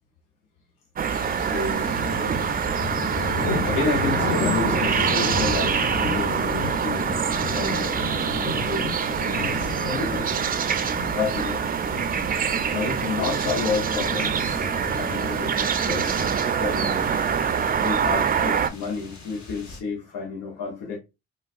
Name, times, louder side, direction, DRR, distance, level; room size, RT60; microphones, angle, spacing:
sound 1, 1.0-18.7, right 7 dB, 30° right, 0.4 m, -25 dB
sound 2, 1.1-19.8, left 3 dB, 60° left, 1.0 m, -33 dB
voice 1, 1.4-2.0 3.6-7.1 7.4-8.0 8.4-10.3 11.1-11.6 12.7-16.9 17.8-21.0, left 5 dB, 85° left, 0.8 m, -30 dB
3.8 x 2.2 x 2.4 m
supercardioid pair, 55°, 32 cm